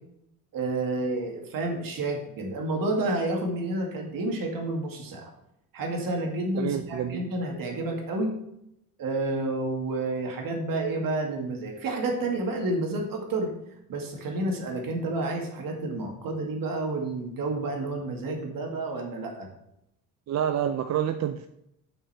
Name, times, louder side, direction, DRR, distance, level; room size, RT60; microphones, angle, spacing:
voice 1, 0.5-5.3 5.7-8.3 9.0-13.5 13.9-19.5, right 2 dB, 60° right, 2.2 m, -30 dB
voice 2, 6.6-7.2 20.3-21.5, right 9 dB, 45° right, 0.5 m, -28 dB
7.3 x 5.6 x 5.8 m
cardioid pair, 135°, 38 cm